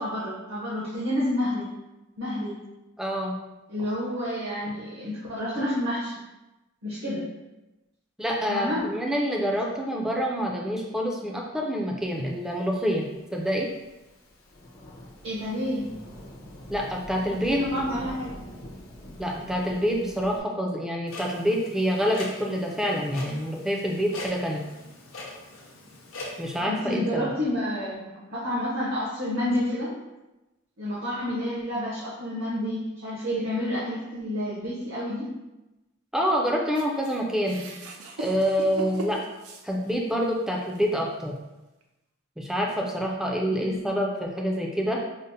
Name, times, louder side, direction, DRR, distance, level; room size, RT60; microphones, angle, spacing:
voice 1, 0.0-1.7 2.2-2.6 3.7-6.2 6.8-7.2 8.5-8.9 15.2-15.9 17.5-18.3 26.6-30.0 30.8-35.3 43.6-43.8, left 1 dB, 60° right, -7 dB, 0.8 m, -29 dB
voice 2, 3.0-3.4 8.2-13.7 16.7-17.6 19.2-24.6 26.4-27.3 36.1-37.6 38.2-39.2 39.6-41.3 42.4-45.0, equal, ahead, -1 dB, 0.3 m, -27 dB
Thunderstorm / Rain, 12.7-20.4, equal, 85° left, 1.0 m, -44 dB
Clock, 21.1-26.6, left 2 dB, 65° left, 0.6 m, -41 dB
sound 1, 36.7-40.2 40.7-40.8 41.8-41.9, right 1 dB, 90° right, 0.5 m, -39 dB
5.0 x 2.0 x 2.7 m, 1.0 s
head